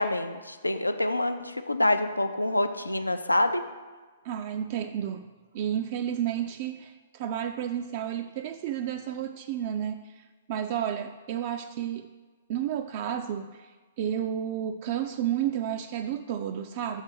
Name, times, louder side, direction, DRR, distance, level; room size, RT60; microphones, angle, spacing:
voice 1, 0.0-3.6, left 1 dB, 85° left, 9 dB, 0.4 m, -26 dB
voice 2, 4.2-12.1 12.5-13.7 14.0-17.0, right 10 dB, 40° right, 6 dB, 0.3 m, -31 dB
6.3 x 3.6 x 6.2 m, 1.3 s
figure-of-eight pair, 115°, 0 cm